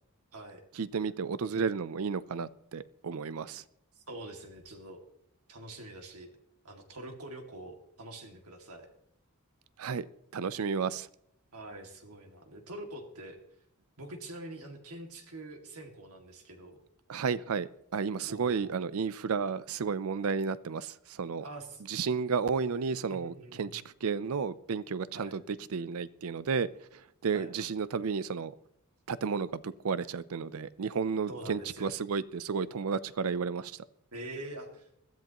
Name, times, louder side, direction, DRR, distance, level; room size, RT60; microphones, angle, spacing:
voice 1, 0.7-3.6 9.8-10.1 10.3-11.1 17.1-21.4 21.9-26.7 27.2-28.5 29.1-33.7, right 5 dB, 70° right, 17 dB, 0.5 m, -32 dB
voice 2, 4.0-5.0 5.5-6.3 6.6-8.9 11.5-13.4 14.0-16.8 18.3-18.7 21.4-21.8 23.1-23.8 25.1-25.4 27.3-27.5 31.3-32.0 34.1-34.9, right 1 dB, 85° right, 4 dB, 2.2 m, -45 dB
21.0 x 13.5 x 3.0 m, 0.75 s
head